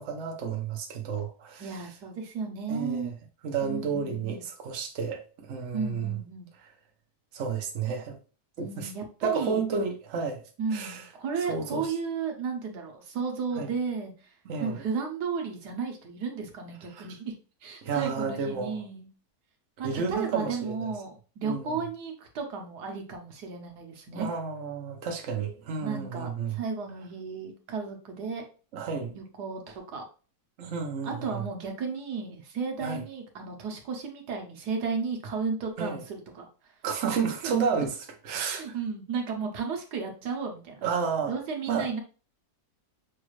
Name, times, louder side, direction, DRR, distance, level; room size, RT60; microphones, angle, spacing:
voice 1, 0.0-1.7 2.7-3.1 3.4-6.1 7.3-8.2 8.6-8.9 9.2-10.4 10.7-11.0 11.5-11.9 13.6-13.7 14.5-14.8 17.0-17.1 17.8-18.8 19.8-20.9 21.4-21.8 24.1-26.6 28.7-29.1 30.6-31.4 32.8-33.0 35.8-36.0 36.8-38.0 38.2-38.6 40.8-41.3 41.7-41.9, right 5 dB, 50° right, 1.0 m, -31 dB
voice 2, 1.6-3.1 3.6-4.4 5.7-6.5 8.6-9.6 10.6-14.3 14.6-17.3 17.6-19.1 19.8-24.3 25.7-28.4 29.1-30.0 31.0-36.7 37.4-37.5 38.4-40.8 41.3-42.0, right 5 dB, 80° right, 1.5 m, -34 dB
6.2 x 2.4 x 3.1 m
omnidirectional pair, 1.7 m